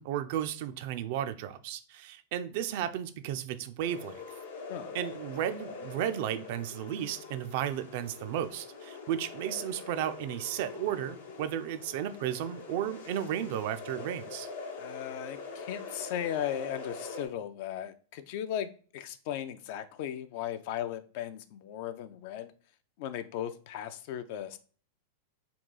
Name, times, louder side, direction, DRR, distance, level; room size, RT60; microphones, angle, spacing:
voice 1, 0.0-4.2 4.9-14.5, right 10 dB, 60° right, 0.4 m, -34 dB
sound 1, 3.8-17.3, left 4 dB, 80° left, 0.9 m, -44 dB
voice 2, 14.8-22.5 23.0-24.6, left 10 dB, 55° left, 0.4 m, -37 dB
3.8 x 2.3 x 3.8 m
hypercardioid pair, 100°, 0 cm